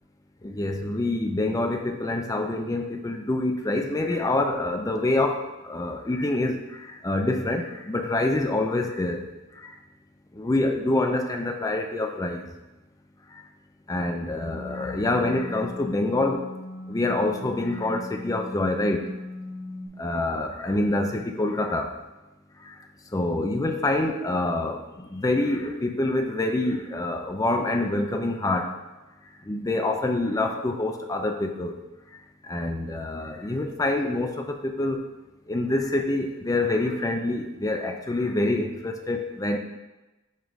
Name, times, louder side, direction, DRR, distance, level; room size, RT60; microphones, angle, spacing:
voice 1, 0.4-9.3 9.6-9.7 10.3-12.4 13.9-16.5 16.9-19.1 20.0-21.9 22.6-22.7 23.1-28.7 29.4-31.8 32.4-35.1 35.5-39.6, left 2 dB, 15° left, 4 dB, 0.4 m, -26 dB
sound 1, 14.4-19.9, left 2 dB, 40° right, 1.8 m, -38 dB
5.2 x 3.8 x 4.7 m, 1.1 s
head